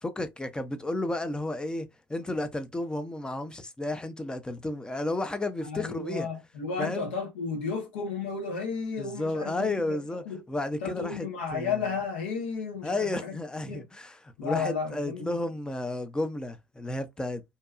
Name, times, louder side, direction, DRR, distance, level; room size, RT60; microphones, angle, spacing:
voice 1, 0.0-6.3 6.8-7.1 9.0-11.3 11.5-11.8 12.8-17.4, left 2 dB, 15° left, 0.5 m, -32 dB
voice 2, 5.6-10.0 10.2-10.4 10.8-13.4 13.7-13.8 14.4-15.3, left 5 dB, 80° left, 0.8 m, -33 dB
2.7 x 2.2 x 2.4 m
hypercardioid pair, 60°, 6 cm